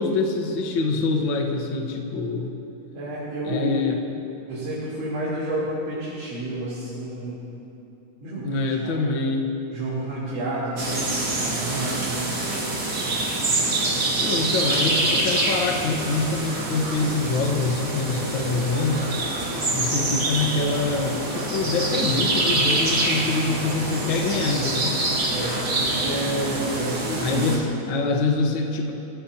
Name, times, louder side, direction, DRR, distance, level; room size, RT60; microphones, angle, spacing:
voice 1, 0.0-2.5 3.4-4.0 8.4-9.5 14.2-19.1 19.7-25.0 27.2-28.9, left 3 dB, 50° left, 1 dB, 1.7 m, -25 dB
voice 2, 2.9-3.8 4.5-7.3 8.2-8.9 9.7-12.2 25.3-27.5, right 1 dB, 90° right, -10 dB, 5.1 m, -30 dB
sound 1, 10.8-27.6, right 2 dB, 35° right, 2.5 m, -25 dB
26.0 x 17.0 x 2.9 m, 3.0 s
omnidirectional pair, 3.5 m